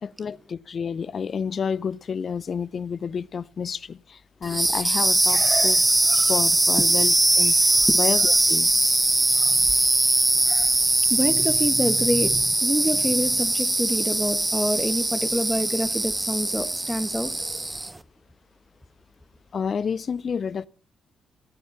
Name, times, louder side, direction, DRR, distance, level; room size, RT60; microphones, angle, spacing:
voice 1, 0.0-5.8 6.1-8.9 19.5-20.7, left 6 dB, 50° left, 0.5 m, -30 dB
sound 1, 4.4-18.0, right 2 dB, 15° right, 0.8 m, -21 dB
voice 2, 11.1-12.3 12.6-17.3, equal, ahead, 1.7 m, -26 dB
16.5 x 9.2 x 5.5 m
hypercardioid pair, 45°, 0 cm